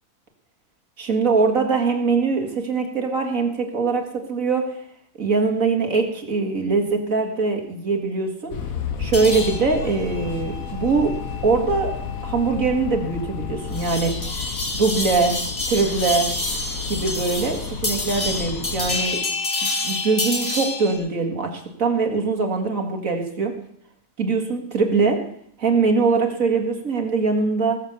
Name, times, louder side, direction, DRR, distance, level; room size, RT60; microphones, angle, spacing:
voice 1, 1.0-4.7 5.2-8.6 9.0-11.1 11.4-11.9 12.2-14.3 14.7-15.4 15.7-16.3 16.9-19.2 19.8-23.5 24.2-25.2 25.6-27.8, right 4 dB, 65° right, 4 dB, 2.5 m, -22 dB
sound 1, 8.5-19.0, left 6 dB, 70° left, 1.5 m, -32 dB
sound 2, 9.1-21.0, left 2 dB, 45° left, 3.1 m, -29 dB
20.0 x 7.4 x 6.8 m, 0.68 s
omnidirectional pair, 1.5 m